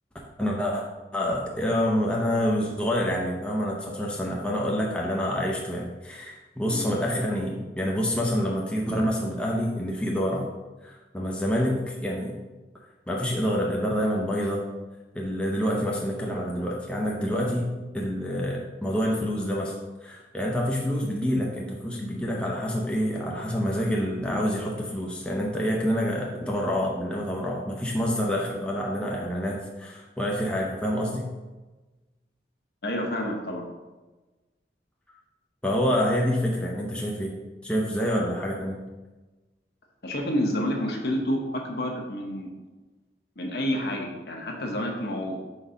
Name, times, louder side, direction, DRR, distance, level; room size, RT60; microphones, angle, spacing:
voice 1, 0.4-0.8 1.1-10.5 10.8-12.3 13.1-14.6 15.1-19.8 20.0-31.3 35.6-37.3 37.6-38.8, equal, 5° left, -2 dB, 0.6 m, -27 dB
voice 2, 32.8-33.7 40.0-42.5 43.4-45.4, equal, 60° left, 1 dB, 1.0 m, -29 dB
4.6 x 4.1 x 5.1 m, 1.2 s
head